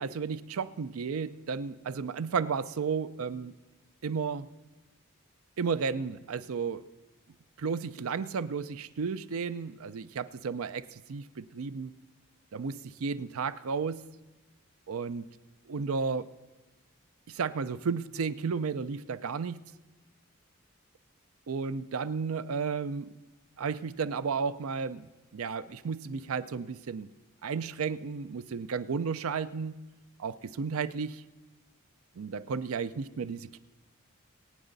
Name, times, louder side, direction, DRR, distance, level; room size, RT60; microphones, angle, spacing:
voice 1, 0.0-3.5 4.0-4.5 5.6-6.8 7.6-11.9 12.5-14.0 14.9-15.2 15.7-16.3 17.3-19.6 21.5-23.2 23.6-27.1 27.4-29.8 30.2-31.2 32.2-33.6, right 5 dB, 80° right, 15 dB, 0.5 m, -33 dB
23.5 x 8.9 x 4.0 m, 1.2 s
head